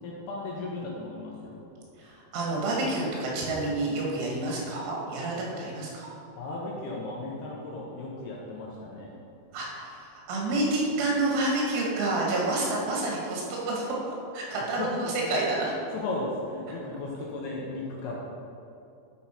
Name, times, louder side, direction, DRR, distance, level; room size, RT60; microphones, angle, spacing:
voice 1, 0.0-1.6 6.4-9.2 14.6-15.4 15.9-18.2, left 2 dB, 75° left, -3 dB, 2.5 m, -35 dB
voice 2, 2.0-6.1 9.5-15.7, right 2 dB, 80° right, -3 dB, 4.0 m, -29 dB
10.5 x 5.5 x 4.4 m, 2.6 s
omnidirectional pair, 5.4 m